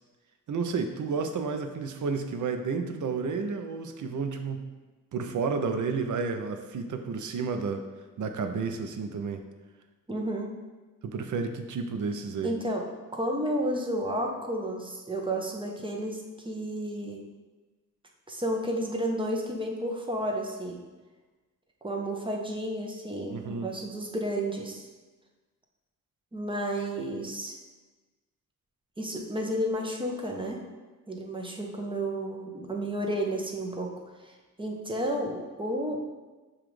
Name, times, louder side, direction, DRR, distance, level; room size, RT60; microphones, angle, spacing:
voice 1, 0.5-4.6 5.1-7.8 8.2-9.4 11.0-12.5 23.3-23.7, right 5 dB, 65° right, 6 dB, 0.5 m, -31 dB
voice 2, 10.1-10.5 12.4-12.9 13.1-17.2 18.3-20.8 21.8-24.9 26.3-27.6 29.0-30.6 31.1-33.9 34.2-36.0, right 1 dB, 15° right, 0 dB, 0.6 m, -32 dB
6.9 x 2.4 x 3.1 m, 1.2 s
wide cardioid pair, 110°, 33 cm